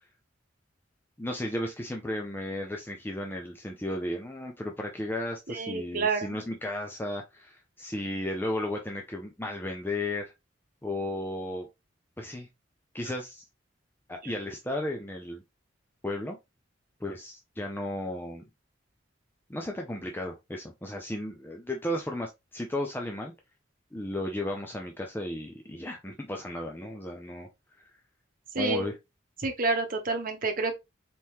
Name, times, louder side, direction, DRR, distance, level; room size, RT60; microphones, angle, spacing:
voice 1, 1.2-10.3 10.8-11.7 12.2-12.5 12.9-13.5 14.1-15.4 16.0-16.4 17.0-18.4 19.5-23.3 23.9-27.5 27.8-27.9 28.6-29.0, left 1 dB, 10° left, 0.6 m, -34 dB
voice 2, 5.5-6.4 14.2-14.3 28.5-28.9 29.4-30.8, right 3 dB, 45° right, 1.1 m, -29 dB
4.2 x 3.8 x 3.1 m
head